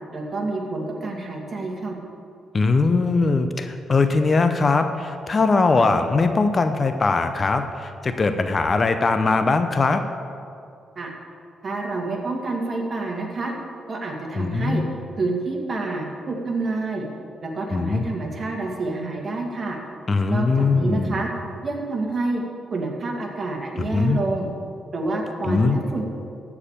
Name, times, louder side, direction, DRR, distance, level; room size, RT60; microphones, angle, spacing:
voice 1, 0.1-2.0 11.0-11.1 11.6-13.5 13.9-14.8 15.2-17.1 17.4-19.8 20.3-21.3 21.6-22.4 22.7-24.5 24.9-26.0, right 3 dB, 40° right, 0 dB, 2.2 m, -28 dB
voice 2, 2.5-10.0 14.4-14.8 17.7-18.0 20.1-21.2 23.8-24.2 25.4-25.8, left 3 dB, 35° left, 8 dB, 0.7 m, -21 dB
13.5 x 4.9 x 8.8 m, 2.5 s
cardioid pair, 90°, 0 cm